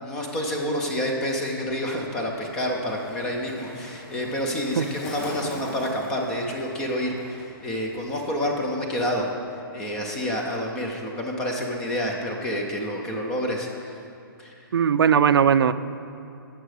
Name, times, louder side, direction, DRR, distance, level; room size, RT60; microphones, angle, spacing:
voice 1, 0.0-9.3 9.7-14.0 14.4-14.5, equal, 5° left, 1 dB, 0.3 m, -28 dB
Skateboard, 1.1-8.6 8.9-9.4, left 1 dB, 35° left, 2.4 m, -42 dB
voice 2, 14.7-15.7, right 8 dB, 85° right, 13 dB, 0.4 m, -18 dB
12.5 x 7.5 x 4.8 m, 2.6 s
hypercardioid pair, 180°, 12 cm